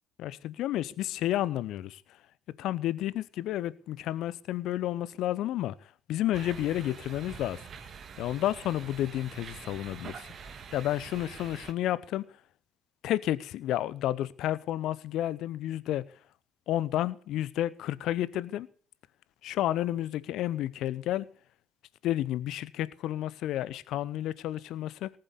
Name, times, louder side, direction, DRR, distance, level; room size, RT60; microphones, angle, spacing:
voice 1, 0.2-2.0 2.6-5.7 6.1-7.6 8.2-10.1 10.7-12.2 13.0-16.0 16.7-18.7 19.4-21.3 22.0-25.1, left 13 dB, 60° left, 0.8 m, -31 dB
sound 1, 6.3-11.7, right 6 dB, 45° right, 1.9 m, -45 dB
19.0 x 7.8 x 7.0 m
figure-of-eight pair, 55°, 0 cm